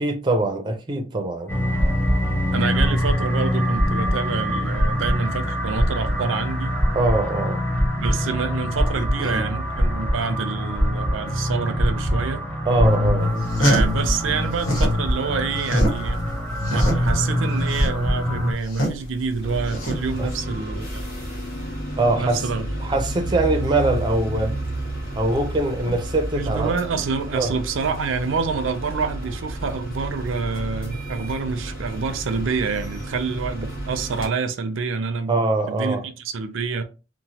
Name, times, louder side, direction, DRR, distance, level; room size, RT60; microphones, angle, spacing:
voice 1, 0.0-1.5 6.9-7.6 9.0-9.5 12.6-13.3 20.2-20.3 22.0-22.5 22.8-24.5 25.1-26.8 27.3-27.5 35.3-36.0, right 2 dB, 25° right, 0.4 m, -23 dB
sound 1, 1.5-18.5, equal, 10° left, 0.7 m, -23 dB
voice 2, 2.5-6.8 8.0-12.4 13.6-16.2 16.6-21.0 22.2-22.7 25.9-26.0 26.3-35.4 35.7-36.8, right 5 dB, 85° right, 0.5 m, -27 dB
sound 2, 13.3-15.0 15.3-20.3, equal, 85° left, 1.2 m, -25 dB
sound 3, 19.4-34.3, right 1 dB, 50° left, 1.4 m, -31 dB
3.0 x 2.0 x 2.8 m
head